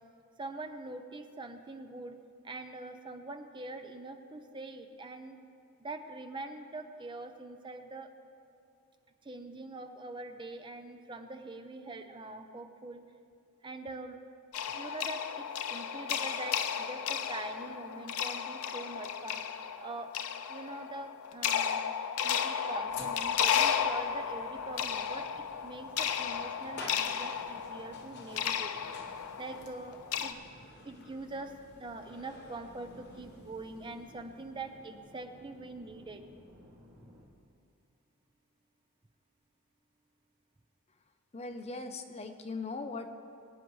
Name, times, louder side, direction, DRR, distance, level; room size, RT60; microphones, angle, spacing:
voice 1, 0.4-2.2 2.4-5.4 5.8-8.1 9.2-13.0 13.6-14.2 14.7-19.4 19.8-20.1 20.5-21.8 22.2-28.7 29.4-30.4 30.8-31.5 31.8-36.2, right 2 dB, 20° right, 6 dB, 0.6 m, -44 dB
sound 1, 14.5-30.3, left 8 dB, 85° left, 0.6 m, -34 dB
sound 2, 22.9-36.1, left 3 dB, 50° left, 1.2 m, -53 dB
sound 3, 24.5-37.3, equal, 60° right, 2.3 m, -59 dB
voice 2, 41.3-43.1, left 3 dB, 30° left, 7 dB, 0.6 m, -39 dB
23.5 x 9.1 x 3.2 m, 2.4 s
head